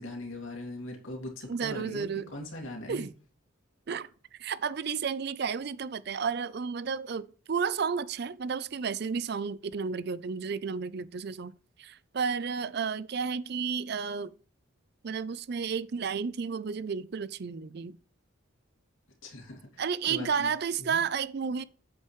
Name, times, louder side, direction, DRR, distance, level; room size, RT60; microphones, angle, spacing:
voice 1, 0.0-3.1 19.2-21.0, left 1 dB, 75° left, 2.5 m, -41 dB
voice 2, 1.5-2.3 2.9-3.1 3.9-4.1 4.4-11.5 11.8-14.3 15.0-18.0 19.8-21.6, right 6 dB, 50° right, 0.4 m, -32 dB
8.8 x 7.9 x 3.1 m
head